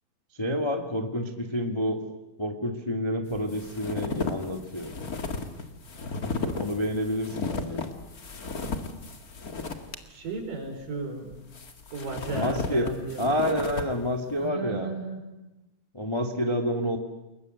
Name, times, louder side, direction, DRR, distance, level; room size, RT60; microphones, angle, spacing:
voice 1, 0.3-2.0 2.4-4.9 6.4-7.9 12.3-12.9 13.2-14.9 15.9-17.0, equal, 10° left, 5 dB, 1.3 m, -28 dB
sound 1, 3.3-10.0 10.4-10.5 11.3-13.9, left 4 dB, 35° left, 1.7 m, -34 dB
voice 2, 10.1-11.3 11.9-13.3 14.4-15.2, right 3 dB, 65° right, 4 dB, 6.6 m, -35 dB
29.5 x 21.5 x 8.0 m, 0.99 s
omnidirectional pair, 4.2 m